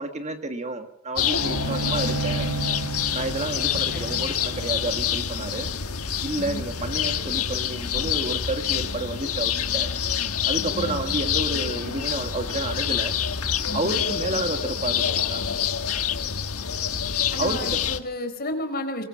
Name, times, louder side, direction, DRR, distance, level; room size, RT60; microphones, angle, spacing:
voice 1, 0.0-2.5 3.1-5.7 6.2-9.9 10.5-13.1 13.7-15.4 17.4-17.8, right 2 dB, 30° right, 7 dB, 1.6 m, -30 dB
sound 1, 1.2-18.0, left 8 dB, 75° left, 1.5 m, -27 dB
Bowed string instrument, 1.4-6.7, right 3 dB, 80° right, 0.8 m, -33 dB
voice 2, 3.7-4.2 6.3-6.7 10.7-11.2 13.7-14.0 17.3-19.0, left 1 dB, 45° left, 7 dB, 4.2 m, -33 dB
23.0 x 22.0 x 7.5 m, 0.75 s
head